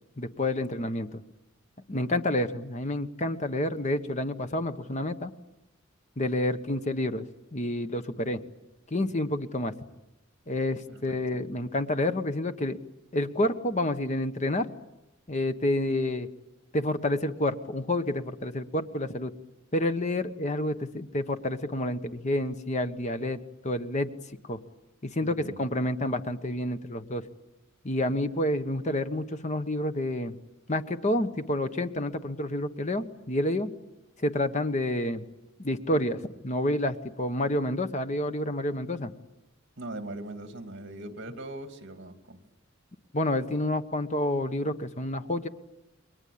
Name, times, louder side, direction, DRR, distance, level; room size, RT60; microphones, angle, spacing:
voice 1, 0.2-1.2 1.9-5.3 6.2-7.3 7.5-8.4 8.9-9.7 10.5-12.8 13.1-14.7 15.3-16.3 16.7-19.3 19.7-24.1 24.4-24.6 25.0-27.2 27.8-30.3 30.7-33.7 34.2-35.2 35.6-39.1 43.1-45.5, left 1 dB, 35° left, 9 dB, 1.2 m, -29 dB
voice 2, 10.9-11.4 25.2-25.6 39.8-42.4, right 1 dB, 60° right, 6 dB, 2.7 m, -41 dB
29.0 x 22.5 x 8.7 m, 0.94 s
head